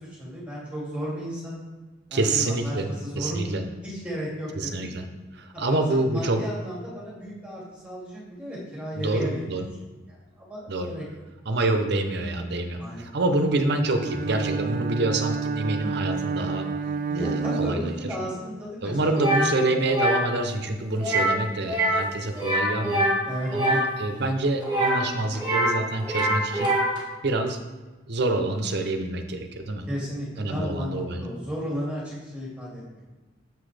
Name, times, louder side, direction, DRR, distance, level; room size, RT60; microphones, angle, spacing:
voice 1, 0.0-1.6 2.1-3.4 3.8-4.9 5.5-9.5 10.1-11.0 12.8-13.4 17.1-19.0 23.3-23.8 29.9-33.1, equal, 5° right, -7 dB, 2.4 m, -34 dB
voice 2, 2.1-3.6 4.5-5.1 5.3-6.4 8.9-9.6 10.7-10.9 11.5-16.7 17.2-17.9 18.8-23.1 23.5-26.7 27.2-27.6 28.1-29.8 30.4-31.2, right 2 dB, 60° right, 6 dB, 0.7 m, -27 dB
Bowed string instrument, 13.9-18.5, right 4 dB, 45° right, 0.3 m, -29 dB
sound 1, 19.2-19.5 19.9-20.2 21.0-21.4 21.6-22.0 22.3-23.8 24.6-25.8 26.0-27.0, right 1 dB, 25° right, 1.7 m, -24 dB
6.9 x 6.0 x 3.3 m, 1.2 s
head